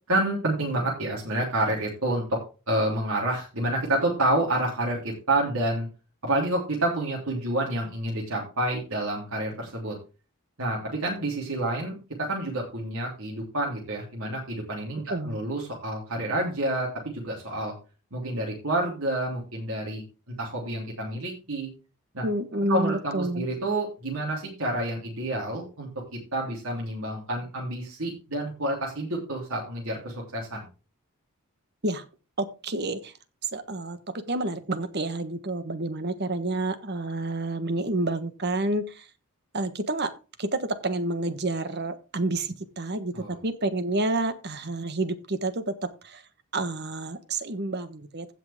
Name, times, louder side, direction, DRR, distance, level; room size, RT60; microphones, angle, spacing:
voice 1, 0.1-2.4 2.7-5.9 6.2-10.0 10.6-17.7 18.1-20.0 20.4-21.7 22.1-22.2 22.7-30.7 43.1-43.4, right 1 dB, 70° right, -3 dB, 3.4 m, -29 dB
voice 2, 22.2-23.5 31.8-32.0 32.4-33.1 33.5-39.1 39.5-40.1 40.4-46.2 46.5-48.3, right 2 dB, 50° right, 10 dB, 1.4 m, -29 dB
16.0 x 5.9 x 3.6 m, 0.32 s
head